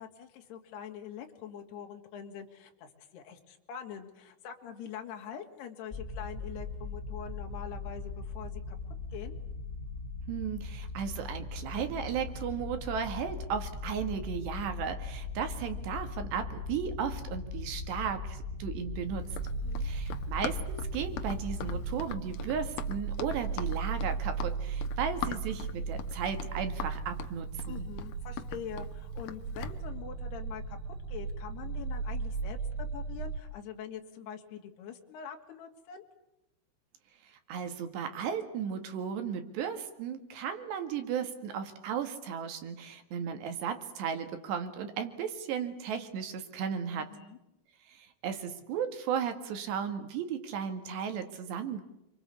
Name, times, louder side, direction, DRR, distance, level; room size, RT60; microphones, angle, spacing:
voice 1, 0.0-8.8 9.1-9.4 19.6-19.9 27.7-30.8 31.1-36.0 47.0-47.4, left 8 dB, 60° left, 3 dB, 4.2 m, -44 dB
sound 1, 5.9-22.0, left 3 dB, 15° left, 3.1 m, -39 dB
voice 2, 10.3-19.4 19.8-27.9 37.2-47.1 47.9-51.8, right 7 dB, 65° right, 8 dB, 3.8 m, -35 dB
Run, 19.3-29.8, left 10 dB, 80° left, 2.0 m, -41 dB
sound 2, 19.3-33.4, right 5 dB, 80° right, 5.2 m, -37 dB
28.5 x 24.0 x 8.5 m, 0.88 s
omnidirectional pair, 5.9 m